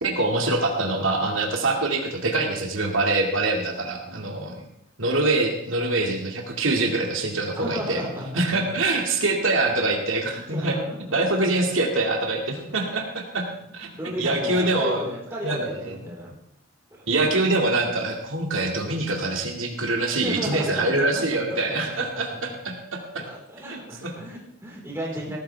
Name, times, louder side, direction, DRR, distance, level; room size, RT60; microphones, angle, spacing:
voice 1, 0.0-4.6 5.0-8.0 8.3-10.8 11.1-13.5 13.7-13.9 14.2-15.0 15.4-16.0 17.1-23.2 23.7-24.1, right 2 dB, 80° right, 1 dB, 2.2 m, -24 dB
voice 2, 3.6-4.7 7.5-8.6 10.2-11.5 12.5-12.8 13.6-16.3 16.9-17.0 20.2-22.2 23.1-25.4, equal, 15° right, -5 dB, 4.4 m, -35 dB
19.0 x 13.0 x 3.5 m, 0.76 s
head